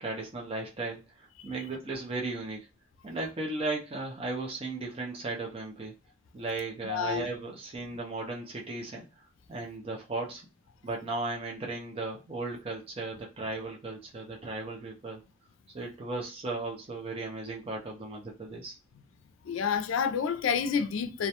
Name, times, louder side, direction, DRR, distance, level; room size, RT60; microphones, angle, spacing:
voice 1, 0.0-2.7 3.0-5.9 6.3-9.0 9.5-10.4 10.8-15.2 15.7-18.7, right 3 dB, 30° right, 0.5 m, -36 dB
voice 2, 6.8-7.3 19.4-21.3, left 6 dB, 80° left, 0.3 m, -29 dB
2.3 x 2.1 x 2.8 m
head